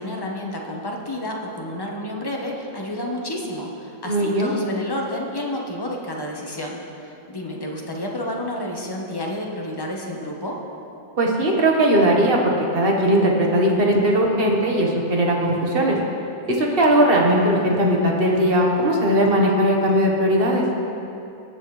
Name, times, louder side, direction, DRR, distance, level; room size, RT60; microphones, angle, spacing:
voice 1, 0.0-10.6, left 1 dB, 25° left, -1 dB, 0.5 m, -30 dB
voice 2, 4.0-4.5 11.2-16.0 16.5-20.6, right 1 dB, 35° right, -1 dB, 1.3 m, -19 dB
19.0 x 7.6 x 3.2 m, 2.7 s
omnidirectional pair, 2.1 m